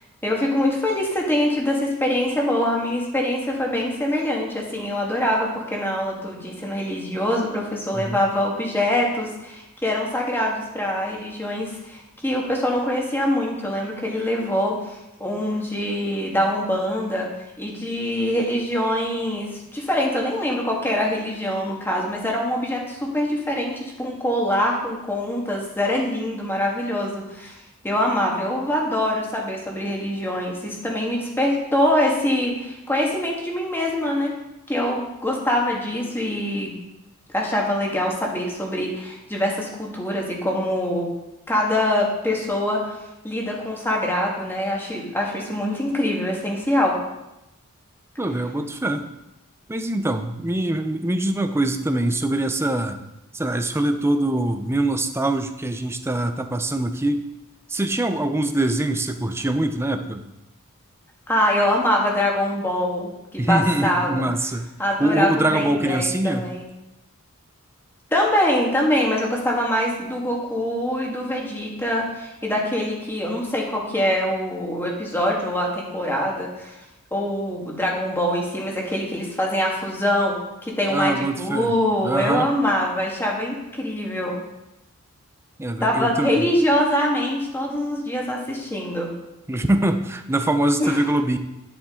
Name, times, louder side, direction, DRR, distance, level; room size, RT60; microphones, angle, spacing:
voice 1, 0.2-17.3 17.6-27.6 27.8-34.3 34.7-36.8 37.3-41.1 41.5-43.0 43.2-47.0 61.3-64.2 64.8-66.7 68.1-76.8 77.1-84.4 85.8-89.1 90.8-91.0, left 1 dB, 10° left, -1 dB, 1.7 m, -24 dB
voice 2, 48.2-49.0 49.7-53.0 53.3-57.2 57.7-60.2 63.4-64.7 65.0-66.5 80.9-81.8 82.0-82.5 85.6-86.5 89.5-91.4, right 1 dB, 10° right, 7 dB, 0.6 m, -23 dB
10.5 x 7.3 x 3.7 m, 0.93 s
head